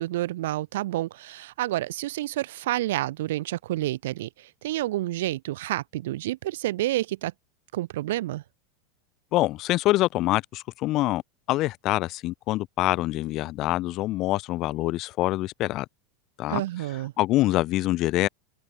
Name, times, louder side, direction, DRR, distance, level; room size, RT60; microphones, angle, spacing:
voice 1, 0.0-7.3 7.7-8.4 16.5-17.1, right 15 dB, 80° right, 3.1 m, -29 dB
voice 2, 9.3-11.2 11.5-15.9 16.4-16.6 17.2-18.3, left 17 dB, 35° left, 4.0 m, -25 dB
open air
supercardioid pair, 160°, 0 cm